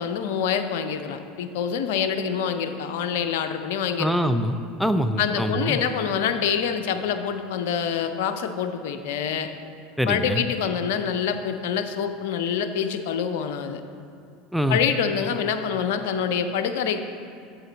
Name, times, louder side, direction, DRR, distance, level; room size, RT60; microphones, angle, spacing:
voice 1, 0.0-4.1 5.2-9.5 10.0-13.8 14.7-17.0, left 7 dB, 65° left, 8 dB, 0.5 m, -26 dB
voice 2, 4.0-5.8 10.0-10.4 14.5-14.8, equal, ahead, 9 dB, 0.4 m, -24 dB
7.9 x 7.5 x 4.0 m, 2.4 s
figure-of-eight pair, 75°, 0 cm